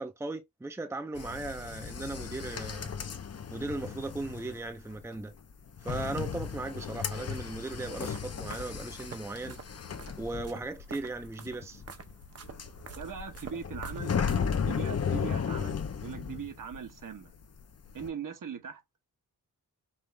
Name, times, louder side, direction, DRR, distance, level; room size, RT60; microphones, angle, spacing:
voice 1, 0.0-2.9 3.5-5.3 5.8-9.6 10.2-11.8, right 2 dB, 10° right, 0.6 m, -37 dB
sound 1, 1.2-17.1 17.3-18.1, left 6 dB, 45° left, 0.7 m, -35 dB
sound 2, 7.5-14.8, right 5 dB, 45° right, 0.8 m, -48 dB
voice 2, 12.9-14.2 14.7-17.3 17.9-18.8, right 7 dB, 65° right, 1.1 m, -40 dB
5.4 x 2.5 x 3.2 m
wide cardioid pair, 115°, 35 cm